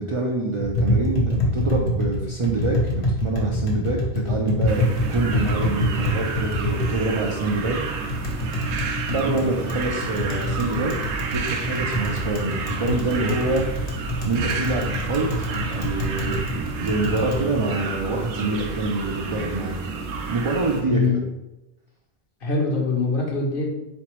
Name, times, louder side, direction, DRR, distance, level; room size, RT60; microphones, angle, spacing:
voice 1, 0.0-7.8 9.1-10.9 11.3-13.6 14.2-19.7 20.3-21.2, right 2 dB, 55° right, -1 dB, 0.3 m, -26 dB
Tap, 0.6-17.4, left 1 dB, 85° left, 1.1 m, -26 dB
sound 1, 4.7-20.8, right 4 dB, 85° right, 0.9 m, -30 dB
voice 2, 20.9-21.2 22.4-23.7, left 3 dB, 60° left, 0 dB, 0.9 m, -23 dB
3.9 x 3.2 x 3.0 m, 0.94 s
omnidirectional pair, 1.1 m